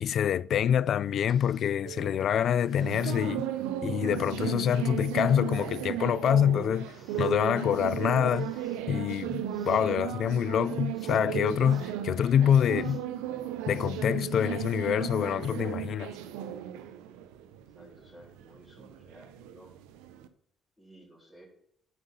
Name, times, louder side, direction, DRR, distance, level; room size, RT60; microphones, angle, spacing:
voice 1, 0.0-3.5 3.8-8.5 8.9-13.0 13.7-16.1, left 9 dB, 65° left, 0.3 m, -26 dB
sound 1, 0.9-1.8 2.5-3.3 4.2-4.4 5.1-6.0 6.7-7.4 7.9-8.8 9.4-9.9 10.4-11.2 11.6-12.0 12.7-13.1 13.6-14.1 14.7-14.9, left 2 dB, 30° left, 3.9 m, -58 dB
sound 2, 1.9-20.3, right 11 dB, 85° right, 0.6 m, -35 dB
voice 2, 17.7-19.7 20.8-21.5, equal, 5° left, 3.5 m, -54 dB
8.4 x 5.4 x 5.2 m
supercardioid pair, 65°, 0 cm